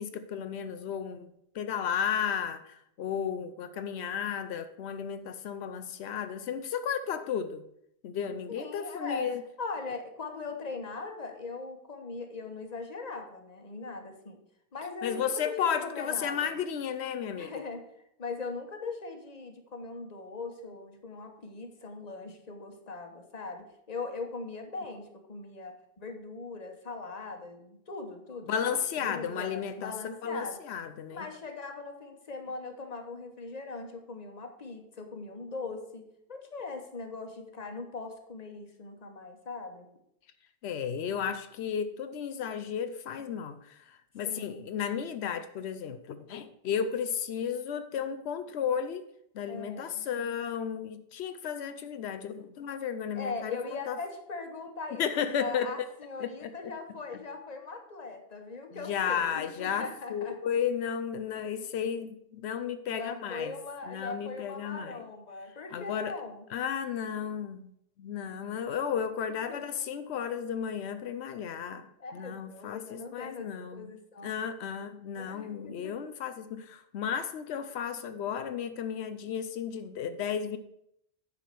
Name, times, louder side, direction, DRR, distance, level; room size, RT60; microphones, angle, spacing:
voice 1, 0.0-7.6 8.0-9.4 15.0-17.6 28.5-29.9 30.2-31.3 40.6-49.0 49.3-53.6 53.9-54.0 55.0-55.7 56.2-56.7 58.7-63.5 63.9-65.0 65.7-66.1 66.5-67.7 68.0-71.9 72.1-73.9 74.2-80.6, left 8 dB, 90° left, 10 dB, 0.9 m, -33 dB
voice 2, 8.5-9.3 9.6-14.4 14.7-16.6 17.3-17.8 18.2-30.6 31.1-39.9 44.2-44.6 49.5-50.1 53.1-55.0 55.4-60.4 62.9-66.5 69.5-69.6 72.0-74.5 75.1-76.0, left 3 dB, 40° left, 5 dB, 1.3 m, -40 dB
9.4 x 4.9 x 6.7 m, 0.76 s
omnidirectional pair, 1.1 m